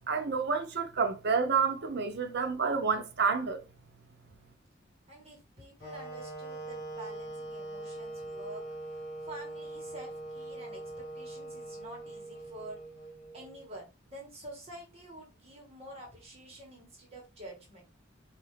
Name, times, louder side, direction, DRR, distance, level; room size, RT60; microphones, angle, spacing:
voice 1, 0.1-3.6, right 5 dB, 55° right, 0.7 m, -29 dB
voice 2, 5.1-8.6 8.9-12.8 13.3-17.8, right 1 dB, 30° right, 1.5 m, -48 dB
Wind instrument woodwind instrument, 5.8-13.8, right 2 dB, 50° left, 1.5 m, -42 dB
4.6 x 2.7 x 3.2 m
head